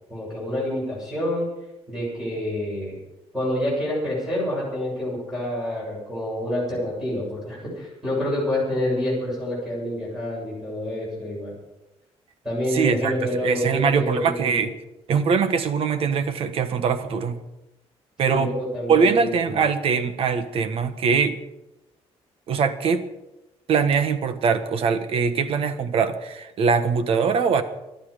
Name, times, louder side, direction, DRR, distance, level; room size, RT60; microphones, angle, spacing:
voice 1, 0.1-1.5 1.9-3.0 3.3-11.5 12.4-14.6 18.2-19.6, left 1 dB, 5° right, -6 dB, 7.2 m, -27 dB
voice 2, 12.7-13.1 13.4-14.7 15.1-17.4 18.2-18.5 18.9-21.4 22.5-23.0 23.7-27.6, right 6 dB, 60° right, 10 dB, 1.3 m, -22 dB
22.0 x 13.0 x 5.1 m, 0.97 s
cardioid pair, 170°, 11 cm